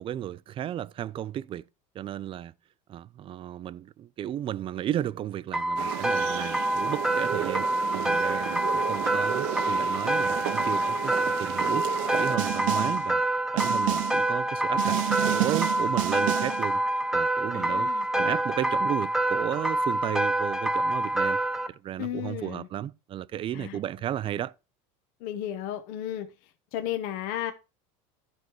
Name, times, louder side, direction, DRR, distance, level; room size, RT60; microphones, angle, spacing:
voice 1, 0.0-1.6 1.9-2.5 2.9-13.2 13.5-15.0 15.3-16.8 17.1-17.9 18.2-21.4 21.7-24.5, right 11 dB, 35° right, 0.5 m, -34 dB
sound 1, 5.5-21.7, right 1 dB, 5° right, 1.0 m, -27 dB
sound 2, 5.8-12.4, right 13 dB, 65° right, 0.9 m, -34 dB
Snare drum, 12.4-13.1 13.6-14.3 14.8-16.7, right 14 dB, 85° right, 1.4 m, -29 dB
voice 2, 17.5-18.4 22.0-22.7 23.5-23.8 25.2-26.3 26.7-27.5, left 11 dB, 60° left, 1.1 m, -34 dB
13.5 x 4.7 x 4.5 m
supercardioid pair, 120°, 17 cm